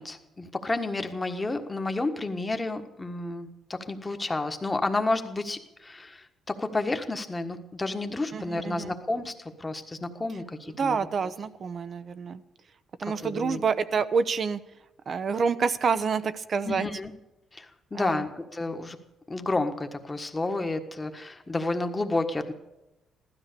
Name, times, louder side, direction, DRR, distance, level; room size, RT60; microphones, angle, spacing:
voice 1, 0.0-11.1 13.0-13.6 16.6-17.1 17.5-19.0 19.3-22.5, left 2 dB, 20° left, 6 dB, 1.5 m, -31 dB
voice 2, 8.3-8.9 10.8-12.4 13.0-14.6 15.1-16.8 17.9-18.2, right 5 dB, 50° right, 12 dB, 0.8 m, -27 dB
15.5 x 13.0 x 6.8 m, 0.95 s
cardioid pair, 90°, 0 cm